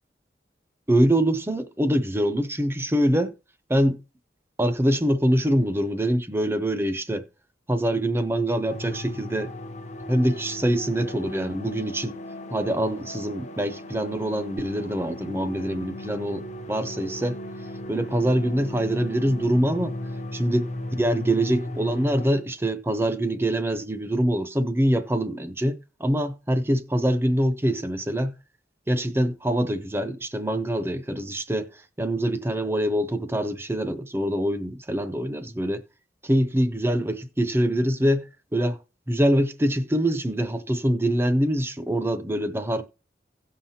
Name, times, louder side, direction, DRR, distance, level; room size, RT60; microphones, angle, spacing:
voice 1, 0.9-3.3 3.7-4.0 4.6-7.3 7.7-9.5 10.1-12.1 12.5-17.4 17.9-20.0 20.3-20.7 21.0-28.4 28.9-35.8 36.2-38.8 39.1-42.8, right 1 dB, 15° right, 0.6 m, -24 dB
sound 1, 8.7-22.3, left 1 dB, 40° left, 0.7 m, -36 dB
16.5 x 5.7 x 2.8 m
head